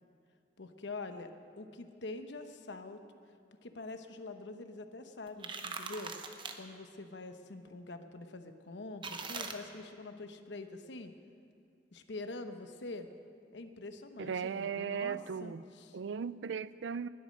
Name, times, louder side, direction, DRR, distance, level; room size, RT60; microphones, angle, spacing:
voice 1, 0.6-3.0 3.6-6.1 6.6-11.1 11.9-13.1 13.5-16.0, left 2 dB, 70° left, 8 dB, 0.9 m, -45 dB
sound 1, 5.3-6.6 9.0-9.5, right 4 dB, 25° right, 0.8 m, -41 dB
voice 2, 14.2-15.6 15.9-17.1, right 6 dB, 75° right, 17 dB, 0.4 m, -37 dB
20.0 x 8.5 x 6.5 m, 2.4 s
head